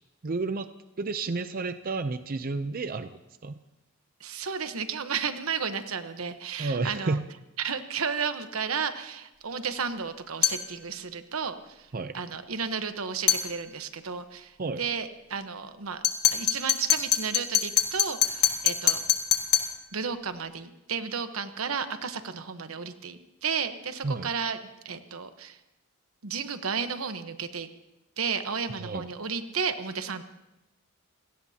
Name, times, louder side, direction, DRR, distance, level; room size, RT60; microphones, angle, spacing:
voice 1, 0.2-0.7 1.0-3.1 3.4-3.6 6.6-7.3 11.9-12.2 14.6-14.8 24.0-24.3 28.7-29.1, right 3 dB, 45° right, 10 dB, 0.5 m, -31 dB
voice 2, 4.2-7.2 7.6-11.8 12.1-16.0 16.3-19.0 19.9-24.6 24.8-25.6 26.2-27.7 28.2-30.2, right 6 dB, 85° right, 9 dB, 1.1 m, -33 dB
sound 1, 10.4-10.7 13.3-13.5 16.0-19.8, left 10 dB, 50° left, 1.9 m, -24 dB
27.5 x 17.5 x 2.8 m, 0.92 s
head